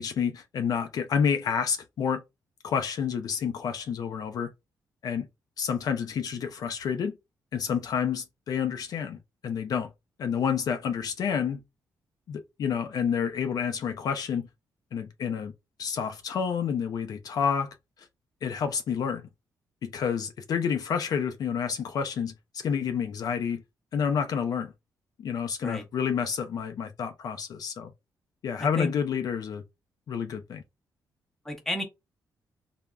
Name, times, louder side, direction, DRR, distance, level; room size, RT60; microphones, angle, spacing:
voice 1, 0.0-2.2 2.6-4.5 5.0-5.3 5.6-7.2 7.5-9.9 10.2-11.6 12.3-14.4 14.9-15.5 15.8-17.7 18.4-19.3 19.8-23.6 23.9-24.7 25.2-27.9 28.4-29.6 30.1-30.6, left 7 dB, 55° left, 0.3 m, -29 dB
voice 2, 28.6-28.9 31.5-31.8, left 1 dB, 5° left, 0.7 m, -32 dB
3.4 x 2.0 x 2.2 m
cardioid pair, 135°, 7 cm